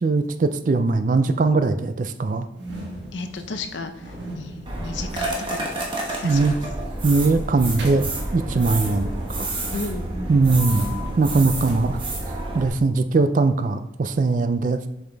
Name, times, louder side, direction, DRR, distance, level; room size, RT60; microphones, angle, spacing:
voice 1, 0.0-2.5 6.2-6.5 7.0-8.1 8.3-9.5 10.3-10.8 11.2-12.0 12.5-14.8, right 3 dB, 45° right, 10 dB, 0.4 m, -20 dB
sound 1, 2.5-12.7, equal, 80° right, 1.2 m, -40 dB
voice 2, 3.1-5.7 6.1-6.5 9.7-10.1, left 3 dB, 85° left, 8 dB, 0.7 m, -34 dB
sound 2, 4.6-12.7, right 2 dB, 25° right, 1.2 m, -29 dB
7.1 x 5.7 x 3.4 m, 0.91 s
head